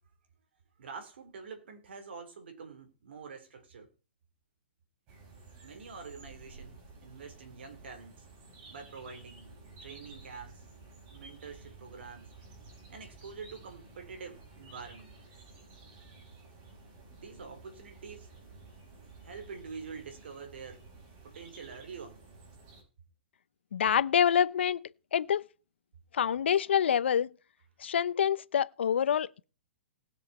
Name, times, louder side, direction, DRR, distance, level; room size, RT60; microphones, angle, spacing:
voice 1, 0.8-3.9 5.6-8.3 8.7-9.5 9.8-10.6 11.1-12.4 12.9-15.1 17.1-18.3 19.2-20.9 21.2-22.2, right 5 dB, 70° right, 3.7 m, -46 dB
sound 1, 5.1-22.8, right 3 dB, 35° right, 5.5 m, -53 dB
voice 2, 23.7-25.4 26.1-27.3 27.8-29.5, left 8 dB, 75° left, 0.7 m, -27 dB
19.0 x 6.5 x 4.3 m
hypercardioid pair, 145°, 6 cm